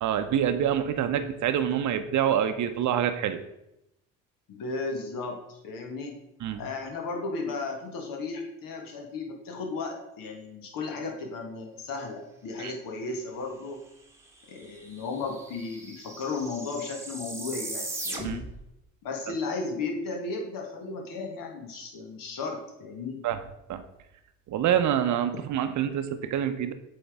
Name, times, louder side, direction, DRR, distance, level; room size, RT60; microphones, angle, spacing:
voice 1, 0.0-3.4 6.4-6.6 12.6-12.7 18.2-18.4 23.2-23.4 23.7-23.8 24.5-26.7, right 9 dB, 50° right, 9 dB, 0.8 m, -26 dB
voice 2, 4.5-6.2 6.6-13.8 14.5-18.5 19.0-23.3, left 3 dB, 60° left, 2 dB, 1.4 m, -35 dB
sound 1, 14.1-14.2 14.4-18.7, right 2 dB, 5° right, 1.2 m, -39 dB
7.9 x 3.5 x 3.6 m, 0.86 s
hypercardioid pair, 55°, 38 cm